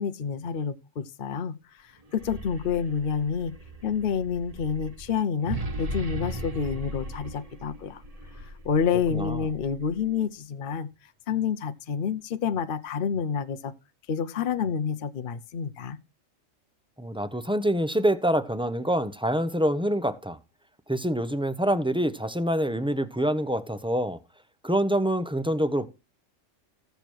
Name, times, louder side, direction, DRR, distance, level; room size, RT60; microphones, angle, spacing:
voice 1, 0.0-1.6 2.1-3.5 3.8-8.0 8.6-10.9 11.3-13.7 14.1-16.0, left 7 dB, 50° left, 0.8 m, -28 dB
sound 1, 2.0-10.2, right 2 dB, 30° right, 1.1 m, -38 dB
voice 2, 9.1-9.5 17.0-20.4 20.9-24.2 24.6-25.9, right 1 dB, 5° right, 0.7 m, -26 dB
15.5 x 6.8 x 4.6 m
omnidirectional pair, 1.3 m